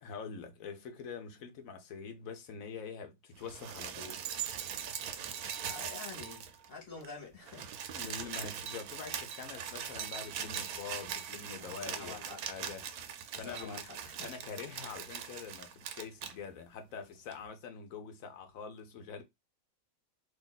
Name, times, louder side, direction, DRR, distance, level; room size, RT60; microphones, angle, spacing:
voice 1, 0.0-4.2 7.9-12.8 13.4-13.9 14.2-19.2, left 6 dB, 60° left, 1.1 m, -45 dB
sound 1, 3.4-6.7 7.0-7.1 7.3-16.3 17.3-17.4, right 8 dB, 70° right, 1.0 m, -41 dB
voice 2, 5.6-7.7 8.0-8.2 11.6-12.4 13.3-14.4, left 4 dB, 35° left, 1.2 m, -47 dB
3.0 x 2.6 x 3.9 m
omnidirectional pair, 1.9 m